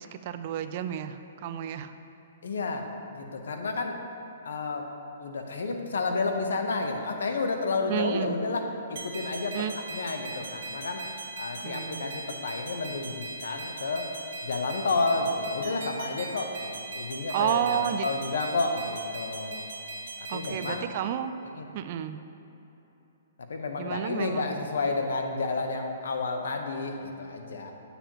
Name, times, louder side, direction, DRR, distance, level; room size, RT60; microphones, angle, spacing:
voice 1, 0.0-2.0 7.9-8.4 9.5-9.7 11.6-12.1 17.3-18.1 20.3-21.3 21.7-22.2 23.8-24.5, right 10 dB, 40° right, 10 dB, 0.3 m, -31 dB
voice 2, 2.4-2.8 3.1-4.0 4.4-4.9 5.2-8.6 8.9-9.6 9.9-11.0 11.4-14.1 14.4-19.6 20.2-20.9 21.6-21.7 23.5-27.7, left 3 dB, 85° left, 4 dB, 0.8 m, -31 dB
sound 1, 9.0-20.8, right 3 dB, 60° right, 1.6 m, -40 dB
8.8 x 6.9 x 2.9 m, 3.0 s
hypercardioid pair, 160°, 0 cm